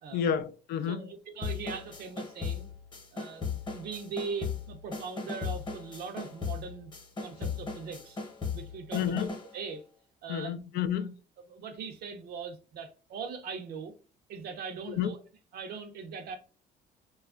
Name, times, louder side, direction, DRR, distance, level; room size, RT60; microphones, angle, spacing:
voice 1, 0.1-1.1 8.9-9.3 10.3-11.1 14.9-15.1, left 8 dB, 70° left, 0.4 m, -30 dB
voice 2, 0.9-2.7 3.1-6.9 7.2-8.2 8.5-9.3 9.5-9.8 10.2-10.5 11.5-13.9 14.3-15.2 15.5-16.4, right 5 dB, 65° right, 0.7 m, -40 dB
sound 1, 1.4-9.6, left 5 dB, 30° left, 0.9 m, -37 dB
3.1 x 2.3 x 2.3 m
cardioid pair, 110°, 17 cm